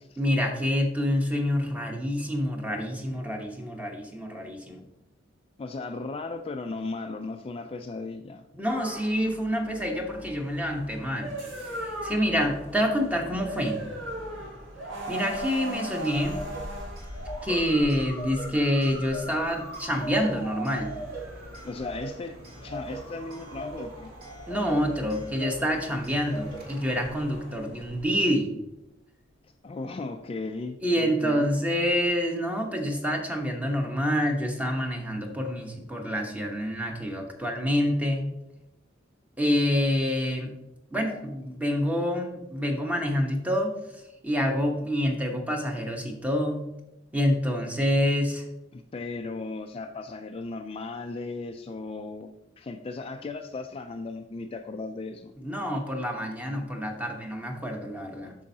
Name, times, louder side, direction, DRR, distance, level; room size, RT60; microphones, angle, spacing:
voice 1, 0.2-4.8 8.5-11.4 11.8-13.8 15.1-16.4 17.4-20.9 24.5-28.5 30.8-38.2 39.4-40.5 40.9-46.7 47.1-48.4 55.4-58.3, equal, 10° right, 2 dB, 1.0 m, -27 dB
voice 2, 5.6-8.4 21.6-22.4 22.6-24.1 29.6-31.5 41.1-41.2 48.7-52.3 52.6-55.3 58.2-58.3, left 3 dB, 30° left, 6 dB, 0.3 m, -36 dB
sound 1, 8.7-28.0, right 1 dB, 70° right, 2.1 m, -40 dB
Clock, 15.7-27.1, right 1 dB, 50° right, 1.9 m, -42 dB
8.5 x 6.2 x 2.7 m, 0.90 s
head